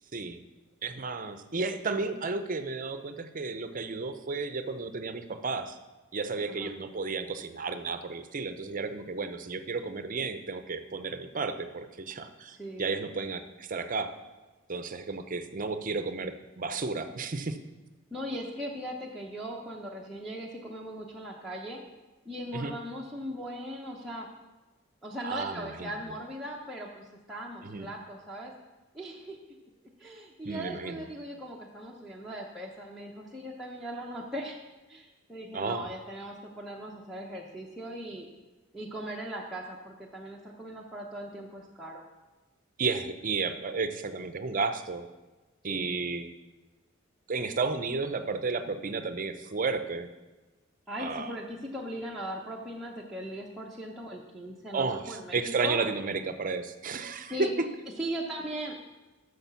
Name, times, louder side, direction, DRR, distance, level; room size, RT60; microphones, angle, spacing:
voice 1, 0.8-5.8 6.1-14.1 14.7-17.6 22.5-22.7 25.2-25.9 27.6-27.9 30.4-31.1 35.5-35.9 42.8-45.1 45.6-46.3 47.3-50.1 51.0-51.3 54.7-57.7, right 4 dB, 40° right, 10 dB, 0.7 m, -32 dB
voice 2, 12.5-12.9 18.1-21.8 22.2-24.3 25.0-28.5 28.9-29.6 30.0-34.6 34.9-38.3 38.7-42.0 45.7-46.0 50.9-55.8 57.3-57.5 58.0-58.7, equal, ahead, -5 dB, 0.9 m, -39 dB
8.7 x 6.6 x 6.9 m, 1.2 s
head